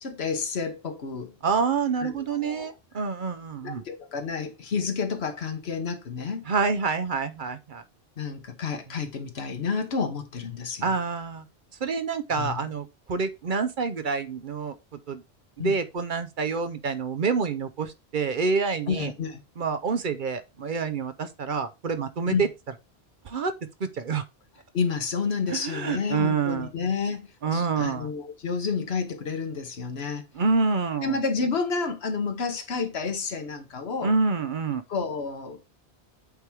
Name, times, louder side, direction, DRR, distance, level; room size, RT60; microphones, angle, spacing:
voice 1, 0.0-1.3 2.0-2.7 3.6-6.5 8.2-10.9 12.4-12.6 15.6-15.8 18.9-19.4 22.3-22.5 24.7-30.2 31.0-34.1 34.9-35.6, left 5 dB, 75° left, 1.4 m, -30 dB
voice 2, 1.4-3.8 6.5-7.8 10.8-11.4 11.8-15.2 15.6-19.1 19.6-22.5 23.2-23.5 23.8-24.2 25.5-26.7 27.4-28.1 30.3-31.2 34.0-34.8, right 5 dB, 55° right, 0.9 m, -27 dB
8.2 x 3.5 x 4.6 m
omnidirectional pair, 1.1 m